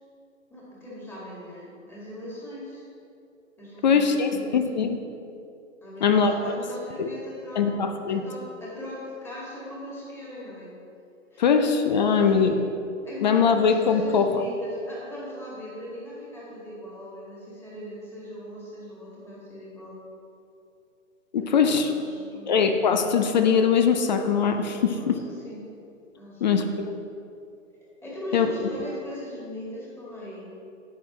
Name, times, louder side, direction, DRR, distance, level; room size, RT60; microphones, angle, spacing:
voice 1, 0.5-2.8 3.6-4.7 5.8-10.7 11.3-11.6 11.9-12.5 13.0-20.0 21.4-22.5 24.8-25.6 26.1-26.4 28.0-30.4, left 1 dB, 5° left, -7 dB, 2.1 m, -39 dB
voice 2, 3.8-5.0 6.0-6.3 7.0-7.1 7.6-8.2 11.4-12.6 13.2-14.4 21.3-21.9 22.5-25.2 26.4-26.9 28.3-28.5, left 6 dB, 35° left, 7 dB, 0.5 m, -21 dB
11.0 x 8.0 x 3.2 m, 2.6 s
hypercardioid pair, 135°, 40 cm